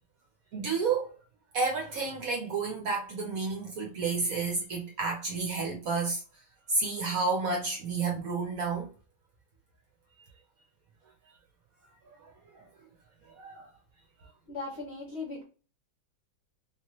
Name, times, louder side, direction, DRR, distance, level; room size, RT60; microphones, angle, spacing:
voice 1, 0.5-1.1 1.5-6.2 6.7-8.9 12.2-12.6 13.3-13.7, right 4 dB, 60° right, 1.0 m, -31 dB
voice 2, 14.5-15.4, left 3 dB, 55° left, 0.7 m, -38 dB
2.9 x 2.9 x 2.9 m
omnidirectional pair, 2.1 m